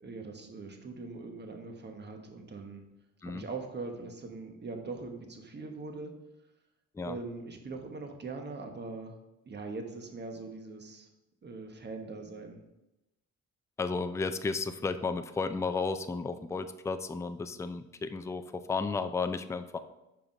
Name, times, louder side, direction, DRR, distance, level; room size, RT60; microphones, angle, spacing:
voice 1, 0.0-2.8 3.2-6.1 7.0-9.1 9.4-11.1 11.4-12.6, right 3 dB, 35° right, 4 dB, 1.2 m, -41 dB
voice 2, 13.8-19.8, left 4 dB, 10° left, 10 dB, 0.4 m, -33 dB
5.7 x 5.0 x 4.8 m, 0.95 s
cardioid pair, 90°, 30 cm